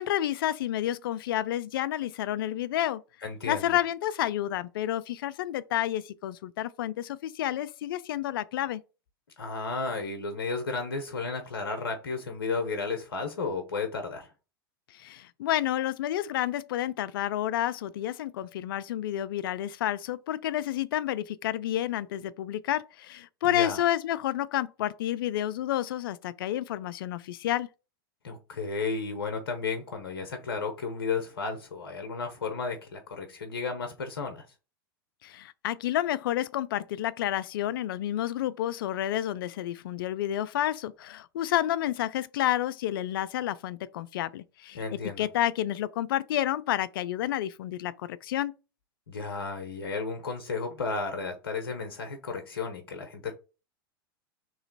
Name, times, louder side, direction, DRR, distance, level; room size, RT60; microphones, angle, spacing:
voice 1, 0.0-3.0 3.4-8.8 14.9-27.7 35.2-48.5, left 12 dB, 70° left, 0.4 m, -30 dB
voice 2, 3.2-3.8 9.4-14.3 23.4-23.8 28.2-34.5 44.7-45.3 49.1-53.3, left 4 dB, 90° left, 0.8 m, -33 dB
3.1 x 2.9 x 3.9 m
hypercardioid pair, 105°, 12 cm